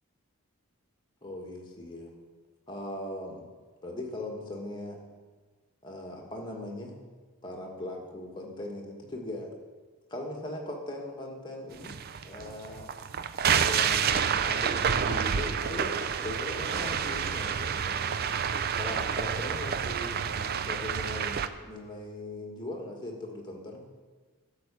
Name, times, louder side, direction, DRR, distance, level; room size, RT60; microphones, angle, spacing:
voice 1, 1.2-2.1 2.7-3.4 3.8-5.0 5.8-7.0 7.4-9.5 10.1-12.9 13.6-18.1 18.8-24.0, left 1 dB, 20° left, 0 dB, 1.5 m, -39 dB
sound 1, 11.8-21.5, right 7 dB, 45° right, 0.4 m, -29 dB
12.0 x 4.8 x 6.8 m, 1.4 s
head